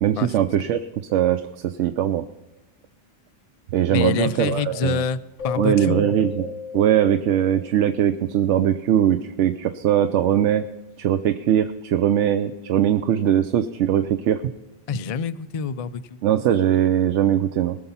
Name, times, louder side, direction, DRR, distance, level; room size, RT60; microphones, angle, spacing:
voice 1, 0.0-0.8 1.1-2.2 3.7-5.0 5.6-10.6 11.0-14.4 16.2-17.8, right 10 dB, 80° right, 10 dB, 0.9 m, -21 dB
voice 2, 3.9-6.1 14.9-16.2, left 6 dB, 55° left, 12 dB, 0.4 m, -26 dB
Keyboard (musical), 5.4-8.1, left 6 dB, 85° left, 1.9 m, -33 dB
20.5 x 7.0 x 5.5 m, 1.1 s
omnidirectional pair, 1.2 m